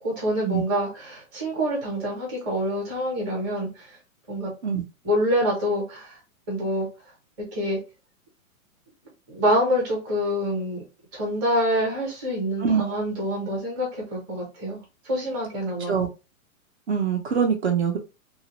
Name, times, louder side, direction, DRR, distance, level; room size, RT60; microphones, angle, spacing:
voice 1, 0.0-4.0 4.3-4.5 5.0-6.2 6.5-6.9 7.4-7.8 9.3-10.8 11.1-16.0, equal, 15° right, -1 dB, 0.8 m, -26 dB
voice 2, 12.6-12.9 15.9-16.1 16.9-18.0, right 7 dB, 50° right, 3 dB, 0.6 m, -23 dB
2.9 x 2.4 x 2.9 m, 0.28 s
hypercardioid pair, 170°, 42 cm